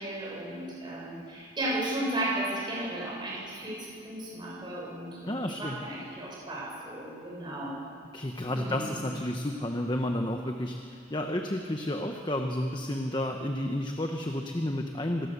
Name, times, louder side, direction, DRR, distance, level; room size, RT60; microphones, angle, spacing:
voice 1, 0.0-7.7 8.5-9.0, right 1 dB, 25° right, -5 dB, 7.2 m, -35 dB
voice 2, 5.3-5.8 8.1-15.3, left 1 dB, 25° left, 3 dB, 1.1 m, -31 dB
26.0 x 19.5 x 6.9 m, 2.3 s
head